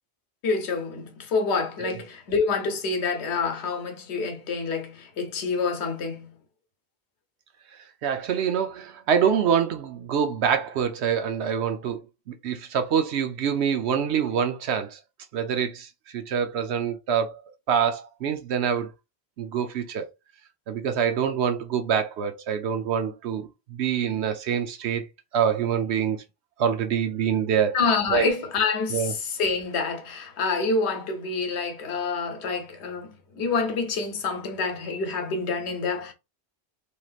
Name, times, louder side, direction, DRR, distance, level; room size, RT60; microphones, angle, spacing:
voice 1, 0.4-6.3 27.7-36.1, left 4 dB, 85° left, 1.1 m, -27 dB
voice 2, 8.0-12.0 12.4-15.0 15.3-15.9 16.1-17.3 17.7-18.9 19.4-20.0 20.7-25.0 25.3-26.2 26.6-27.8 28.1-28.3 28.9-29.1, right 7 dB, 85° right, 0.9 m, -25 dB
3.2 x 2.8 x 2.4 m
omnidirectional pair, 1.1 m